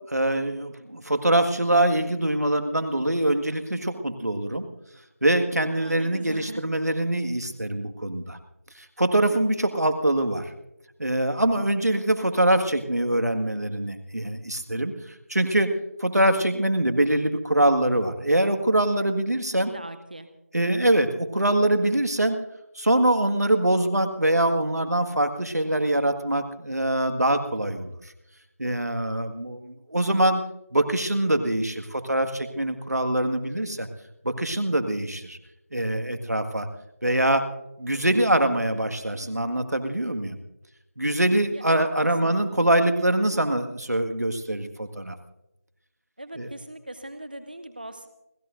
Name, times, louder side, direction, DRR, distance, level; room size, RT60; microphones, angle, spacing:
voice 1, 0.1-4.7 5.2-8.4 8.8-10.5 11.0-14.9 15.3-15.7 16.0-19.7 20.5-22.4 22.8-27.9 28.6-30.4 30.7-33.9 34.2-35.4 35.7-36.7 37.0-37.5 37.8-40.4 41.0-45.2 46.4-46.5, right 1 dB, 80° right, 7 dB, 1.8 m, -24 dB
voice 2, 5.8-6.6 19.5-20.3 41.5-42.5 46.2-48.1, right 1 dB, 35° right, 10 dB, 0.7 m, -40 dB
29.5 x 14.5 x 2.6 m, 0.90 s
figure-of-eight pair, 175°, 9 cm